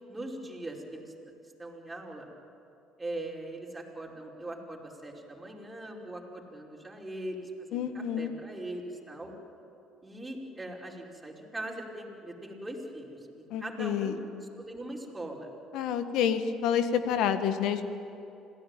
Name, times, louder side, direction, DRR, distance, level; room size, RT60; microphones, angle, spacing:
voice 1, 0.1-1.1 1.6-2.3 3.0-9.3 10.0-15.5, right 1 dB, 15° right, -1 dB, 5.3 m, -41 dB
voice 2, 7.7-8.3 13.5-14.2 15.7-17.8, left 8 dB, 70° left, 9 dB, 1.6 m, -28 dB
26.5 x 17.5 x 9.2 m, 2.8 s
hypercardioid pair, 65°, 0 cm